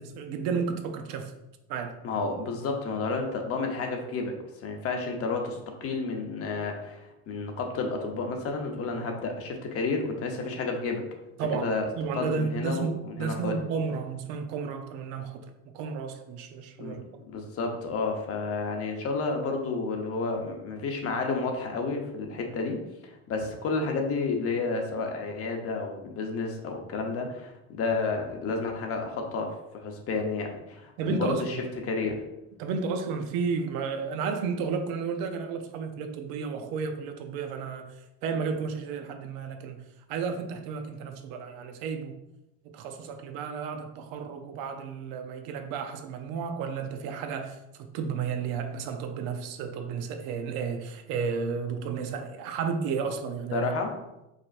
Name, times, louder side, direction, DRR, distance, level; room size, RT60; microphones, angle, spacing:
voice 1, 0.0-1.3 1.7-2.0 11.4-15.5 15.7-17.2 31.0-31.4 32.6-37.9 38.2-39.8 40.1-42.2 42.7-53.7, right 5 dB, 70° right, 0.7 m, -32 dB
voice 2, 2.0-11.1 11.6-13.6 16.8-17.0 17.3-31.6 31.8-32.2 53.5-54.0, left 3 dB, 40° left, 0.8 m, -31 dB
5.0 x 4.3 x 2.5 m
cardioid pair, 140°, 36 cm